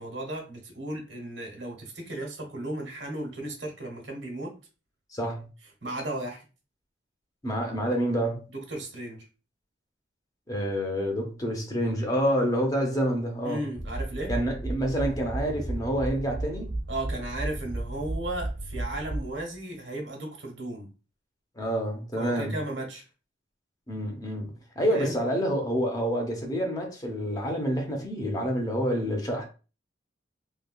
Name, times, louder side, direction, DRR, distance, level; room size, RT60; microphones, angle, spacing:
voice 1, 0.0-4.5 5.8-6.4 8.5-9.3 13.4-14.3 16.9-20.9 22.2-23.0 24.9-25.2, right 1 dB, 90° right, 1.1 m, -35 dB
voice 2, 5.1-5.5 7.4-8.4 10.5-13.6 14.3-16.7 21.6-22.5 23.9-29.5, equal, 20° left, 0.7 m, -28 dB
sound 1, 13.7-19.6, right 1 dB, 50° left, 1.5 m, -34 dB
3.4 x 2.2 x 2.3 m
head